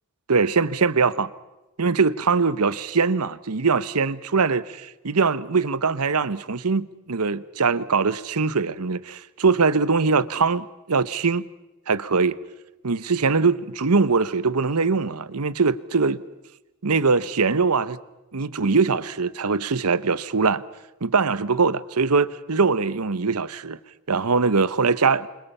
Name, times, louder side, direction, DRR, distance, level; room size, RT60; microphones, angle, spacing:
voice 1, 0.3-1.3 1.8-11.4 11.9-12.3 12.8-16.2 16.8-18.0 18.3-20.6 21.0-23.8 24.1-25.3, right 4 dB, 90° right, 1.0 m, -22 dB
29.0 x 25.5 x 5.6 m
head